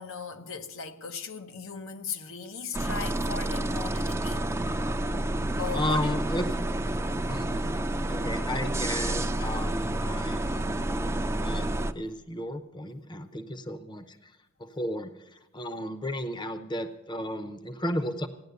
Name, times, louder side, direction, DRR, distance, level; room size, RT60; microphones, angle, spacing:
voice 1, 0.0-4.5 5.6-6.2, left 5 dB, 80° left, 0.9 m, -37 dB
sound 1, 2.7-11.9, right 1 dB, 15° right, 0.5 m, -29 dB
voice 2, 5.7-6.5 7.3-7.8 8.1-14.3 14.6-18.3, left 1 dB, 20° left, 0.7 m, -34 dB
16.0 x 10.0 x 6.8 m
head